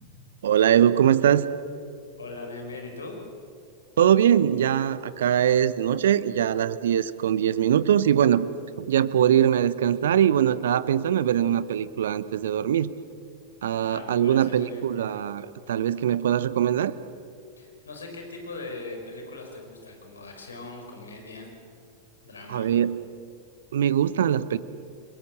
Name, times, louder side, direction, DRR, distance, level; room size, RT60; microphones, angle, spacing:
voice 1, 0.4-1.4 4.0-8.5 8.8-12.9 13.6-16.9 22.5-23.0 23.7-24.6, right 10 dB, 60° right, 16 dB, 0.9 m, -22 dB
voice 2, 2.2-3.2 13.8-14.9 17.6-21.5 22.2-22.7, left 3 dB, 75° left, 3 dB, 5.2 m, -40 dB
30.0 x 22.0 x 7.8 m, 2.3 s
figure-of-eight pair, 90°, 0 cm